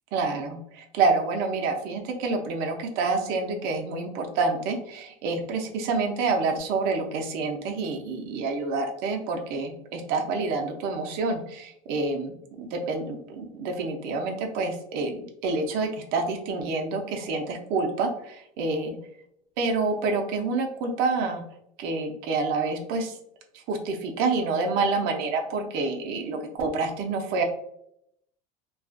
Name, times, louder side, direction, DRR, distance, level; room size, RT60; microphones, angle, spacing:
voice 1, 0.1-12.3 12.6-19.0 19.6-21.4 21.8-23.1 23.7-27.4, right 3 dB, 65° right, 4 dB, 0.6 m, -28 dB
2.4 x 2.3 x 2.4 m, 0.73 s
supercardioid pair, 115°, 16 cm